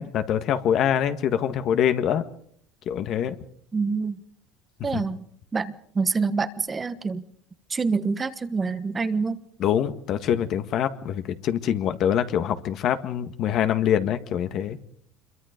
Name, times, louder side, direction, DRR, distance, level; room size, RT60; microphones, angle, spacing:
voice 1, 0.0-2.2 2.9-3.3 4.9-5.0 9.6-14.8, left 9 dB, 55° left, 9 dB, 1.7 m, -24 dB
voice 2, 3.7-4.2 4.8-5.3 5.5-7.2 7.7-9.4, right 4 dB, 20° right, 11 dB, 1.3 m, -26 dB
26.0 x 23.0 x 5.2 m, 0.63 s
supercardioid pair, 120°, 0 cm